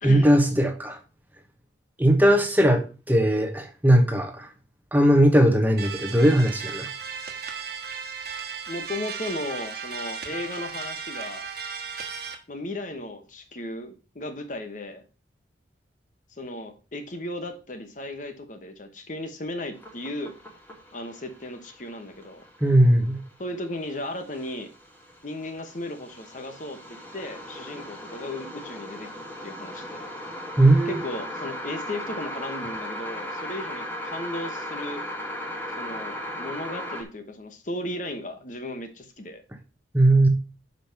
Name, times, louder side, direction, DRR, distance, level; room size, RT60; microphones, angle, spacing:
voice 1, 0.0-1.0 2.0-4.5 4.9-6.9 22.6-23.2 30.6-31.0 39.9-40.3, right 1 dB, 10° right, 5 dB, 1.0 m, -19 dB
sound 1, 5.8-12.3, right 6 dB, 55° right, 1.3 m, -35 dB
voice 2, 8.7-11.5 12.5-15.0 16.4-20.3 20.9-22.4 23.4-24.7 25.2-30.1 30.9-35.1 35.8-39.4, left 1 dB, 40° left, 7 dB, 1.0 m, -35 dB
sound 2, 19.7-37.0, equal, 10° left, 1.6 m, -37 dB
6.2 x 5.3 x 5.8 m, 0.34 s
head